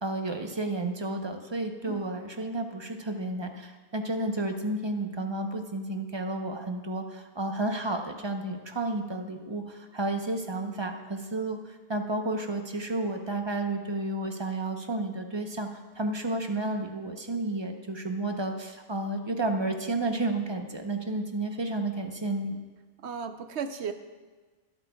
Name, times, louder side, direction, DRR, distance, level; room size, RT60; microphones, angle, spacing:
voice 1, 0.0-15.7 16.0-22.6, right 2 dB, 25° right, 4 dB, 0.8 m, -31 dB
voice 2, 23.0-23.9, right 6 dB, 80° right, 8 dB, 1.0 m, -34 dB
23.5 x 8.1 x 2.3 m, 1.4 s
omnidirectional pair, 1.1 m